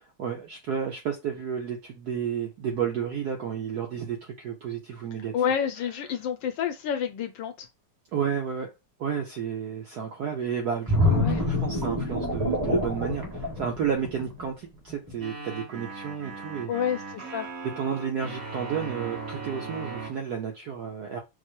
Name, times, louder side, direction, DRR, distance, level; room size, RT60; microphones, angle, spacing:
voice 1, 0.2-5.3 8.1-8.7 9.0-16.7 17.8-21.2, right 7 dB, 70° right, 0.9 m, -31 dB
voice 2, 5.3-7.7 11.0-11.4 16.7-17.5, left 8 dB, 75° left, 1.1 m, -29 dB
sound 1, 10.9-14.5 14.9-15.1, left 1 dB, 15° right, 0.9 m, -26 dB
sound 2, 15.2-20.1, right 4 dB, 50° right, 1.1 m, -38 dB
4.7 x 2.0 x 4.4 m
omnidirectional pair, 2.4 m